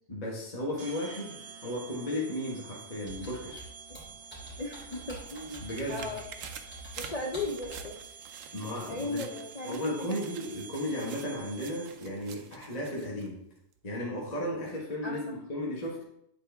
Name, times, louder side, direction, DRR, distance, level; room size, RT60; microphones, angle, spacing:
voice 1, 0.1-3.7 5.6-6.1 7.0-7.1 8.5-9.3 9.6-13.4 13.8-16.0, left 1 dB, 30° left, -4 dB, 1.3 m, -35 dB
sound 1, 0.8-12.2, right 6 dB, 85° right, 1.4 m, -49 dB
Computer keyboard, 3.0-7.9, right 1 dB, 5° left, 2.8 m, -47 dB
voice 2, 4.6-6.2 7.0-8.0 8.9-10.2 15.0-15.2, left 2 dB, 65° left, 0 dB, 0.3 m, -37 dB
sound 2, 4.6-13.3 13.7-13.8, right 8 dB, 65° right, 0.9 m, -49 dB
8.3 x 4.2 x 3.4 m, 0.75 s
omnidirectional pair, 1.6 m